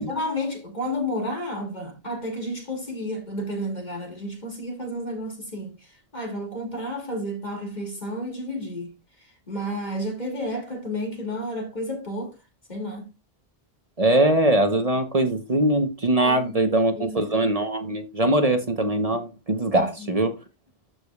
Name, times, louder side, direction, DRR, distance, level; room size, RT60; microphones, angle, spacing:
voice 1, 0.0-8.9 9.5-12.3 12.7-13.1 16.2-17.4 19.7-20.1, equal, 45° left, 2.9 m, -31 dB
voice 2, 14.0-20.4, right 1 dB, 35° right, 1.1 m, -22 dB
13.5 x 4.9 x 2.4 m
omnidirectional pair, 1.1 m